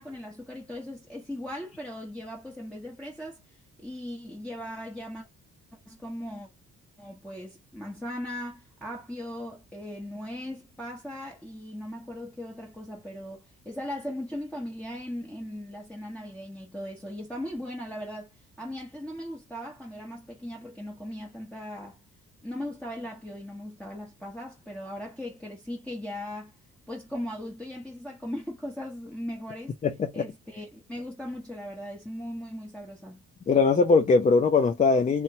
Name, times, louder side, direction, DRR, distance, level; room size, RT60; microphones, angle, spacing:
voice 1, 0.0-5.3 5.9-6.5 7.0-18.3 18.6-22.0 22.4-26.5 26.9-29.7 30.1-33.2, left 1 dB, 5° left, 0.9 m, -38 dB
voice 2, 29.8-30.2 33.5-35.2, left 4 dB, 25° left, 0.4 m, -21 dB
2.9 x 2.2 x 2.7 m
cardioid pair, 90°, 30 cm